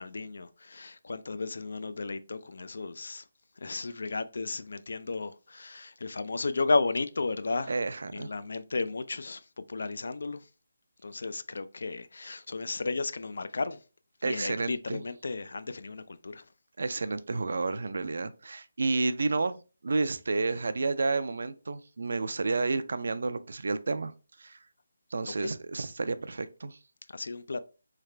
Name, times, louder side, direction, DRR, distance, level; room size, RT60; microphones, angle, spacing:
voice 1, 0.0-3.2 3.6-7.7 8.1-9.4 9.7-10.4 11.0-13.8 14.2-16.3 25.3-25.4 27.1-27.6, left 3 dB, 70° left, 0.3 m, -33 dB
voice 2, 7.7-8.3 14.2-15.0 16.8-19.6 19.8-24.1 24.4-24.6 25.1-26.8, right 3 dB, 70° right, 0.3 m, -30 dB
3.2 x 2.4 x 3.2 m
hypercardioid pair, 170°, 0 cm